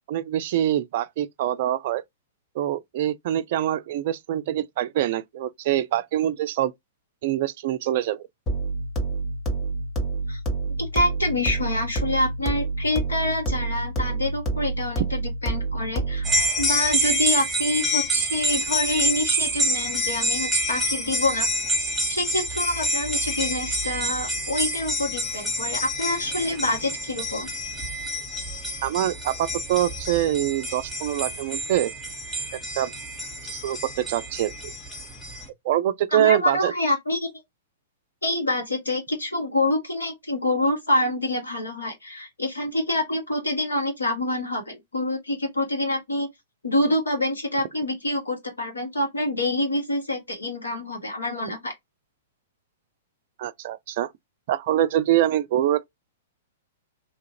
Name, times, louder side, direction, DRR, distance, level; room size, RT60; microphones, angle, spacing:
voice 1, 0.1-2.0 2.6-6.7 7.2-8.3 28.8-31.9 32.8-32.9 33.5-34.5 35.6-36.7 53.4-54.1 54.5-55.8, right 12 dB, 50° right, 0.3 m, -24 dB
sound 1, 8.5-16.5, right 3 dB, 20° left, 1.1 m, -28 dB
voice 2, 10.8-16.2 16.6-21.5 22.1-27.5 36.1-37.3 38.2-46.3 46.6-51.7, left 1 dB, 85° left, 1.4 m, -26 dB
sound 2, 16.2-35.5, equal, ahead, 1.0 m, -27 dB
2.8 x 2.4 x 2.8 m
figure-of-eight pair, 110°, 0 cm